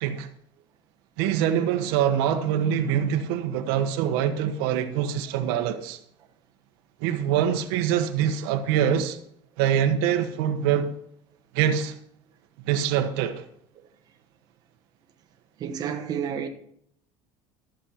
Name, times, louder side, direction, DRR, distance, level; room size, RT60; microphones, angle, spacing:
voice 1, 1.2-6.0 7.0-9.2 9.6-10.9 11.5-11.9 12.6-13.4, right 9 dB, 80° right, 1.2 m, -24 dB
voice 2, 15.6-16.5, right 8 dB, 30° right, 1.2 m, -30 dB
14.0 x 6.5 x 5.8 m
cardioid pair, 160°, 12 cm